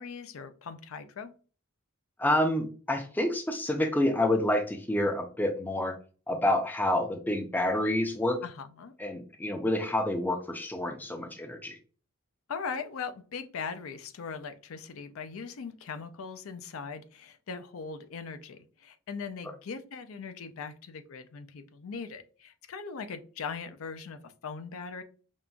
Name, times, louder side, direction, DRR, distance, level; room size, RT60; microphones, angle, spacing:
voice 1, 0.0-1.3 8.4-8.9 12.5-25.0, left 5 dB, 80° left, 10 dB, 0.5 m, -40 dB
voice 2, 2.2-5.9 6.3-8.4 9.0-11.8, left 1 dB, 10° left, 5 dB, 0.4 m, -28 dB
5.3 x 2.5 x 2.3 m, 0.38 s
head